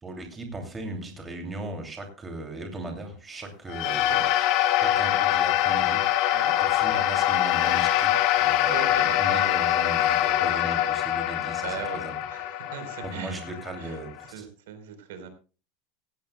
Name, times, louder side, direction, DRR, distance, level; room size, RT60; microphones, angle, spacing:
voice 1, 0.0-4.5 4.8-12.1 13.0-14.1 14.4-14.5, right 2 dB, 10° right, 3 dB, 2.7 m, -38 dB
sound 1, 3.7-14.2, left 12 dB, 45° left, 1.6 m, -24 dB
voice 2, 3.8-4.2 6.3-6.6 8.6-9.7 11.6-12.0 12.3-14.0 14.3-15.3, right 7 dB, 75° right, 8 dB, 4.0 m, -39 dB
16.5 x 16.5 x 2.3 m, 0.35 s
supercardioid pair, 165°, 0 cm